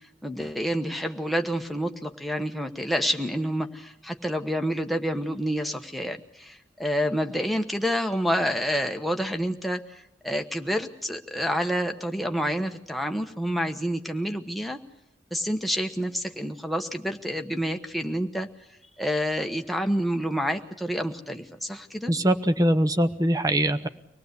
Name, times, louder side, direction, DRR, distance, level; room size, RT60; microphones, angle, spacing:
voice 1, 0.2-9.8 10.2-14.8 15.3-18.5 19.0-22.1, equal, ahead, 4 dB, 1.1 m, -28 dB
voice 2, 22.1-23.9, right 1 dB, 20° right, 8 dB, 0.9 m, -22 dB
25.0 x 18.5 x 8.2 m, 0.79 s
head